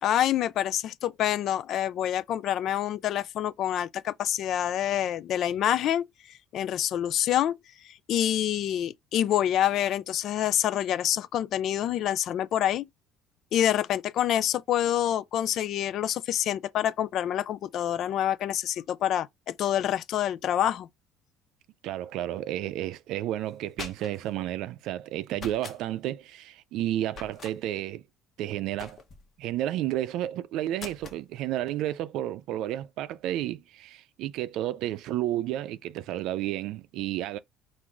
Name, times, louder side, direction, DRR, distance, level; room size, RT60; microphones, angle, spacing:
voice 1, 0.0-7.5 7.8-12.9 13.5-20.9, left 11 dB, 55° left, 0.3 m, -27 dB
voice 2, 21.8-28.0 28.4-29.0 29.4-37.4, right 13 dB, 70° right, 0.5 m, -31 dB
sound 1, 23.5-24.3 25.3-25.8 27.1-27.6 28.8-29.3 30.8-31.2, left 4 dB, 40° left, 0.9 m, -43 dB
4.7 x 2.6 x 3.8 m
cardioid pair, 140°, 0 cm